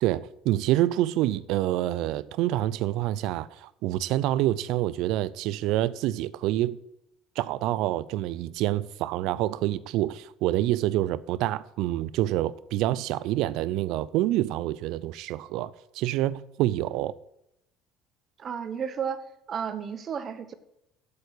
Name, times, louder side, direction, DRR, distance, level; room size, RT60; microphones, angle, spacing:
voice 1, 0.0-6.8 7.4-17.1, right 14 dB, 70° right, 0.5 m, -27 dB
voice 2, 18.4-20.5, right 7 dB, 45° right, 1.0 m, -33 dB
8.1 x 6.9 x 8.0 m
hypercardioid pair, 75°, 0 cm